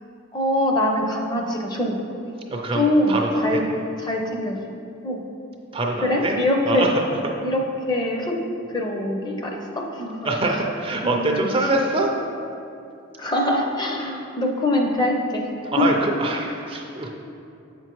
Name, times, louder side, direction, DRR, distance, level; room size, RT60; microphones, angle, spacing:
voice 1, 0.3-2.0 2.7-3.6 4.0-4.6 5.0-5.2 6.0-6.9 7.4-8.4 8.7-10.6 11.0-11.7 13.2-15.5 15.8-15.9, left 1 dB, 20° left, 1 dB, 0.6 m, -23 dB
voice 2, 2.5-3.6 5.7-6.4 6.7-6.9 10.2-12.1 15.7-17.1, right 2 dB, 25° right, 1 dB, 0.5 m, -24 dB
7.6 x 5.9 x 3.0 m, 2.7 s
head